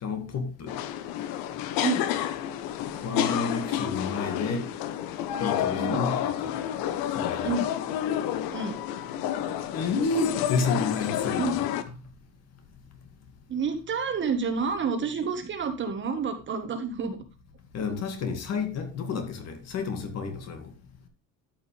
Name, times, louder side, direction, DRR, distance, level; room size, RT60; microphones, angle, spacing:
voice 1, 0.0-0.7 3.0-4.7 5.4-6.5 7.2-7.6 9.7-11.6 17.7-20.7, left 4 dB, 45° left, 2.2 m, -30 dB
sound 1, 0.7-11.8, left 11 dB, 80° left, 1.1 m, -30 dB
voice 2, 11.4-11.7 13.5-17.2, right 5 dB, 35° right, 1.5 m, -29 dB
12.5 x 6.0 x 3.3 m
cardioid pair, 150°, 35 cm